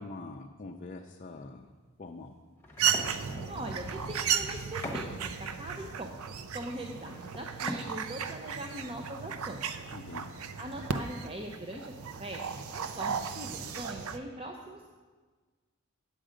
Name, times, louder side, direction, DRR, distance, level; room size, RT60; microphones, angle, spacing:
voice 1, 0.0-1.7 2.0-2.4 9.9-10.3, left 3 dB, 35° left, 2 dB, 0.4 m, -44 dB
sound 1, 2.6-3.8 4.5-5.2 5.6-5.7 5.9-8.1 8.4-8.5 8.8-8.9 9.2-9.3 10.9-11.5 11.9-12.1 12.4-12.7, left 1 dB, 10° left, 1.1 m, -43 dB
sound 2, 2.8-14.2, right 7 dB, 75° right, 0.5 m, -35 dB
voice 2, 3.5-5.0 5.4-6.2 6.5-9.7 10.6-14.9, right 1 dB, 25° right, 2 dB, 0.5 m, -41 dB
9.1 x 7.6 x 5.0 m, 1.4 s
head